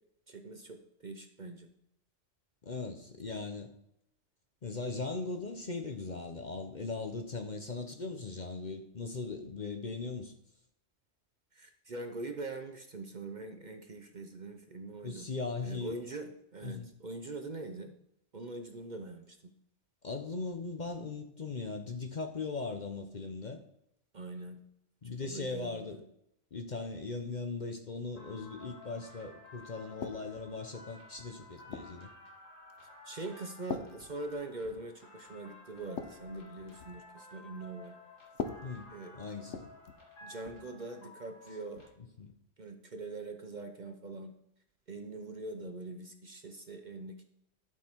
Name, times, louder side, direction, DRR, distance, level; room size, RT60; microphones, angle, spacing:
voice 1, 0.3-1.7 11.5-15.3 15.6-17.9 18.3-19.5 24.1-24.6 25.2-26.0 33.0-38.0 38.9-39.2 40.2-41.8 42.6-44.3 44.9-47.2, right 2 dB, 40° right, 6 dB, 0.8 m, -43 dB
voice 2, 2.6-3.7 4.6-10.3 15.0-16.0 16.6-16.9 20.0-23.6 25.0-26.0 26.5-32.1 38.6-38.9 39.1-39.7 42.2-42.3, left 3 dB, 40° left, 6 dB, 0.8 m, -39 dB
sound 1, 28.1-41.9, left 2 dB, 85° left, 2.8 m, -54 dB
sound 2, 30.0-30.5 31.2-32.0 32.7-33.0 33.7-34.9 35.2-35.4 35.7-37.0 38.3-40.1 40.4-40.7 41.7-41.9, left 6 dB, 70° left, 1.2 m, -43 dB
12.0 x 6.3 x 4.5 m, 0.76 s
omnidirectional pair, 1.3 m